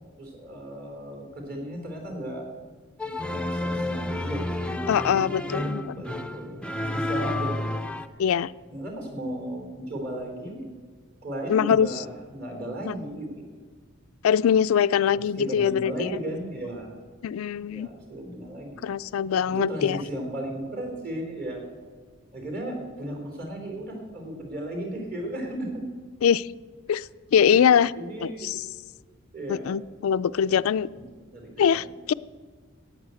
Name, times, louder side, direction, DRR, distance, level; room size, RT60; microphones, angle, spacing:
voice 1, 0.2-2.5 3.0-7.9 8.7-10.7 11.2-13.6 15.1-17.0 17.7-18.9 19.4-21.7 22.3-25.8 26.9-27.0 27.5-27.6 27.9-28.6 29.3-29.8 31.2-31.9, right 1 dB, 45° right, 2 dB, 3.7 m, -35 dB
sound 1, 3.0-8.1, left 1 dB, 5° left, 0.4 m, -30 dB
voice 2, 4.9-5.8 8.2-8.5 11.5-11.9 14.2-16.1 17.2-17.9 18.8-20.0 26.2-26.5 26.9-27.9 28.2-28.6 29.5-30.9 31.6-32.1, left 8 dB, 80° left, 15 dB, 0.3 m, -22 dB
11.5 x 9.0 x 8.3 m, 1.5 s
head